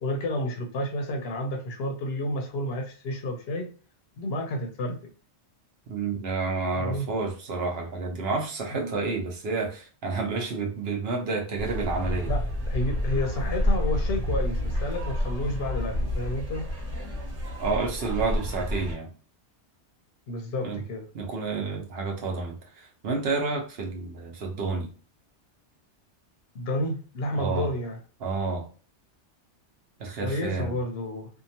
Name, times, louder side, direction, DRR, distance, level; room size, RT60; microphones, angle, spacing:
voice 1, 0.0-3.7 4.2-5.0 6.7-7.1 8.7-8.9 12.3-16.7 20.3-21.1 26.5-28.0 30.2-31.3, left 1 dB, 65° left, 3 dB, 0.8 m, -31 dB
voice 2, 5.9-12.3 17.6-19.1 20.6-20.8 21.1-24.9 27.3-27.7 28.2-28.7 30.0-30.8, right 4 dB, 65° right, 2 dB, 0.9 m, -30 dB
sound 1, 11.6-18.9, left 1 dB, 10° right, 1.0 m, -29 dB
2.7 x 2.2 x 2.8 m, 0.38 s
omnidirectional pair, 1.2 m